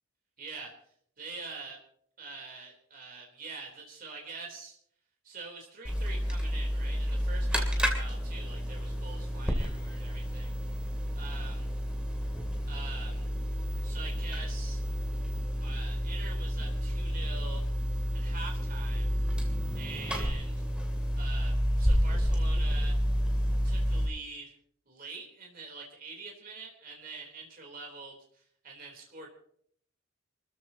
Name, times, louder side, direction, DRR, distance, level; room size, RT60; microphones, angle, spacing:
voice 1, 0.4-0.7 1.2-1.8 2.2-4.7 5.2-10.5 11.2-11.7 12.7-13.3 13.8-14.8 15.6-17.6 18.1-19.1 19.7-20.6 21.2-23.0 23.6-24.5 24.9-28.2 28.6-29.3, right 4 dB, 45° right, 0 dB, 3.5 m, -45 dB
sound 1, 5.8-24.1, equal, 5° right, 2.7 m, -30 dB
28.0 x 14.0 x 2.9 m, 0.63 s
head